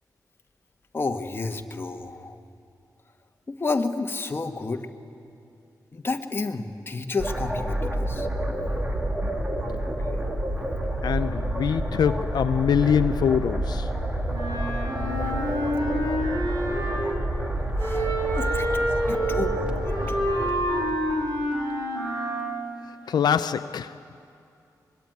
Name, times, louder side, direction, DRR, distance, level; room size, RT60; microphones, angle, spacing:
voice 1, 0.9-2.4 3.5-4.8 5.9-8.3 17.8-20.2, left 3 dB, 35° left, 1.6 m, -31 dB
sound 1, 7.2-21.4, right 1 dB, 15° right, 2.3 m, -29 dB
voice 2, 11.0-13.9 18.4-18.5 23.1-23.9, left 8 dB, 80° left, 0.6 m, -24 dB
Wind instrument woodwind instrument, 14.3-17.2 17.8-22.6, equal, 75° right, 7.7 m, -28 dB
25.0 x 22.0 x 9.4 m
wide cardioid pair, 115°, 7 cm